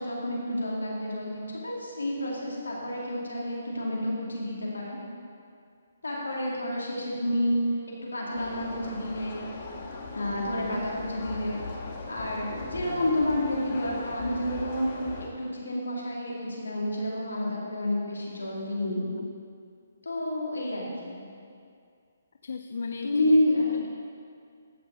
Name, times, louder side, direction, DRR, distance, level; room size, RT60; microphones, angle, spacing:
voice 1, 0.0-5.0 6.0-7.6 8.1-9.4 10.1-11.6 12.1-14.9 15.4-19.0 20.1-21.2 23.0-23.7, left 1 dB, 85° left, -3 dB, 2.5 m, -29 dB
sound 1, 8.3-15.3, left 3 dB, 40° left, 1.5 m, -39 dB
voice 2, 22.4-23.4 23.7-24.0, left 4 dB, 65° left, 6 dB, 0.4 m, -36 dB
14.0 x 6.0 x 3.9 m, 2.3 s
figure-of-eight pair, 140°, 0 cm